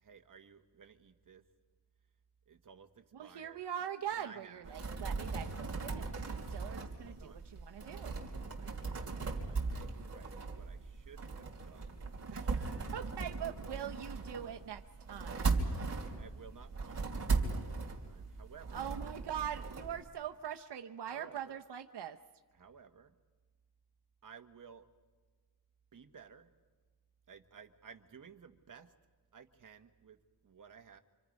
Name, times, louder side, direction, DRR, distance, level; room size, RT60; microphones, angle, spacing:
voice 1, 0.0-1.4 2.5-3.6 4.1-4.8 7.1-7.4 8.6-12.0 16.2-18.9 21.1-21.6 22.5-23.1 24.2-24.8 25.9-26.5 27.3-28.9 29.3-30.2 30.4-31.0, right 6 dB, 50° right, 6 dB, 1.3 m, -56 dB
voice 2, 3.1-8.2 12.3-14.8 15.1-15.4 18.7-22.2, right 9 dB, 80° right, 6 dB, 0.8 m, -42 dB
sound 1, 4.6-20.0, right 4 dB, 35° right, 3.0 m, -38 dB
29.0 x 26.0 x 5.3 m, 1.4 s
wide cardioid pair, 175°, 40 cm